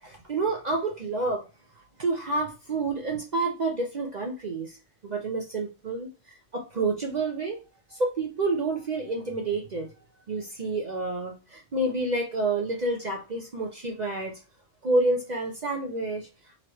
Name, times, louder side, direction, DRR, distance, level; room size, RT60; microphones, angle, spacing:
voice 1, 0.0-1.5 2.0-4.8 5.0-6.1 6.5-7.6 7.9-9.9 10.3-14.4 14.8-16.3, right 2 dB, 45° right, 0 dB, 0.7 m, -29 dB
4.1 x 3.0 x 2.9 m, 0.30 s
omnidirectional pair, 1.2 m